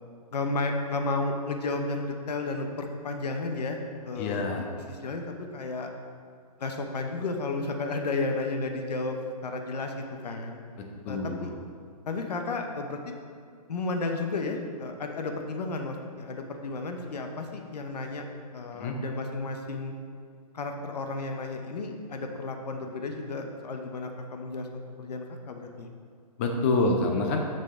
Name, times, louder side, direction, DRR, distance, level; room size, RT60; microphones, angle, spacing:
voice 1, 0.3-3.8 4.0-5.9 6.6-9.2 9.4-10.6 11.1-11.5 12.1-13.0 13.7-18.2 18.5-19.9 20.5-24.7 25.0-25.9, left 3 dB, 90° left, 4 dB, 0.9 m, -32 dB
voice 2, 4.2-4.7 10.8-11.5 18.7-19.0 26.4-27.4, left 2 dB, 20° left, 3 dB, 0.5 m, -27 dB
6.7 x 6.4 x 3.7 m, 2.2 s
hypercardioid pair, 165°, 20 cm